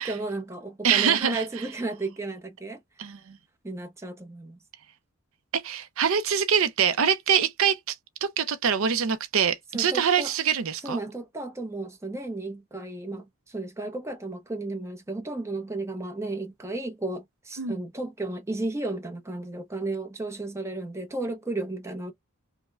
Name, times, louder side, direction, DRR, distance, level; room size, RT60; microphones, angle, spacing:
voice 1, 0.0-2.8 3.6-4.6 9.7-10.3 10.8-22.1, right 2 dB, 10° right, 0.7 m, -33 dB
voice 2, 0.8-1.7 3.0-3.4 5.5-8.0 8.2-11.0 17.6-17.8, right 7 dB, 70° right, 0.5 m, -24 dB
5.2 x 2.1 x 2.3 m
head